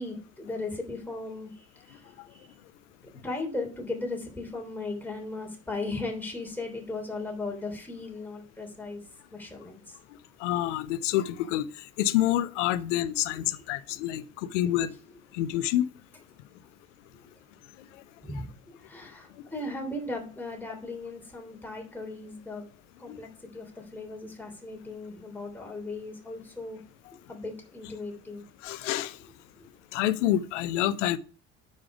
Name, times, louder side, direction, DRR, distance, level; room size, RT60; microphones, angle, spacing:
voice 1, 0.0-2.5 3.2-9.0 9.3-9.9 18.2-22.6 23.0-23.3 23.5-26.8 27.3-28.4 29.6-29.7, left 2 dB, 5° left, 3.1 m, -37 dB
voice 2, 10.4-11.7 12.0-14.9 15.3-15.9 23.1-23.2 28.6-29.2 29.9-31.2, left 13 dB, 65° left, 0.7 m, -27 dB
9.5 x 5.5 x 4.8 m
figure-of-eight pair, 55°, 39 cm